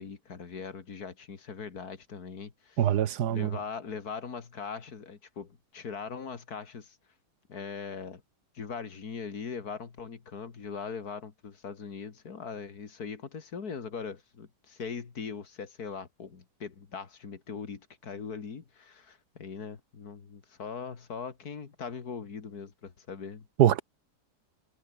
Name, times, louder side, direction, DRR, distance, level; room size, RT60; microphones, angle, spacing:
voice 1, 0.0-2.9 3.3-7.0 7.5-8.2 8.5-23.5, left 5 dB, 70° left, 2.6 m, -40 dB
voice 2, 2.8-3.5 23.6-23.8, right 11 dB, 75° right, 1.5 m, -23 dB
omnidirectional pair, 1.7 m